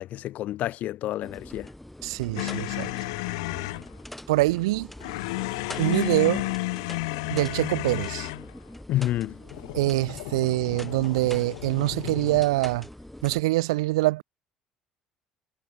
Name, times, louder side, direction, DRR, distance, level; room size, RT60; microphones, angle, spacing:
voice 1, 0.0-1.7 8.9-9.3, left 14 dB, 60° left, 1.0 m, -29 dB
sound 1, 1.2-13.4, left 1 dB, 5° left, 7.0 m, -43 dB
voice 2, 2.0-2.9 4.3-4.9 5.8-6.4 7.3-8.3 9.7-12.9 13.2-14.2, right 20 dB, 85° right, 0.5 m, -24 dB
sound 2, 2.4-3.9 5.0-8.5 9.4-12.4, left 25 dB, 85° left, 0.5 m, -32 dB
hypercardioid pair, 70°, 3 cm